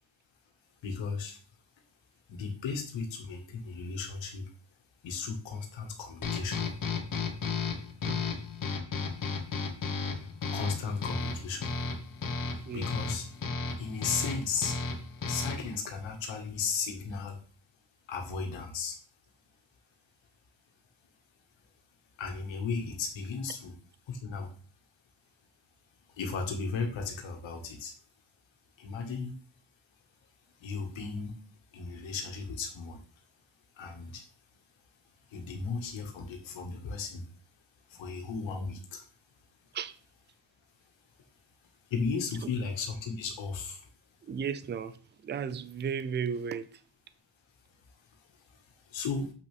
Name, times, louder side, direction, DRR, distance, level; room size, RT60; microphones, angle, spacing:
voice 1, 0.8-1.4 2.3-4.5 5.0-6.7 10.5-11.7 12.6-13.3 13.8-14.8 15.3-17.4 18.1-19.0 22.2-23.8 24.1-24.5 26.2-27.9 28.8-29.3 30.6-31.3 31.7-33.0 33.8-34.2 35.3-37.2 37.9-39.0 41.9-43.9 48.5-49.3, left 5 dB, 70° left, 1.8 m, -35 dB
sound 1, 6.2-15.8, left 4 dB, 45° left, 1.5 m, -34 dB
voice 2, 44.2-45.0 45.2-46.8, right 7 dB, 25° right, 0.4 m, -34 dB
7.5 x 6.2 x 3.5 m
cardioid pair, 150°, 46 cm